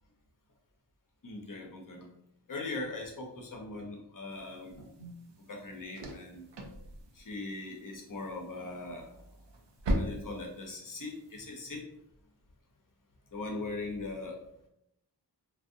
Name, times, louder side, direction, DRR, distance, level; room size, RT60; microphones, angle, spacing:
voice 1, 1.2-2.1 2.5-5.1 5.5-6.4 7.1-9.0 9.9-11.8 13.3-14.4, left 2 dB, 50° left, 1 dB, 0.7 m, -40 dB
sound 1, 4.3-11.4, equal, 75° right, 0.6 m, -40 dB
2.5 x 2.0 x 2.6 m, 0.77 s
wide cardioid pair, 45°, 42 cm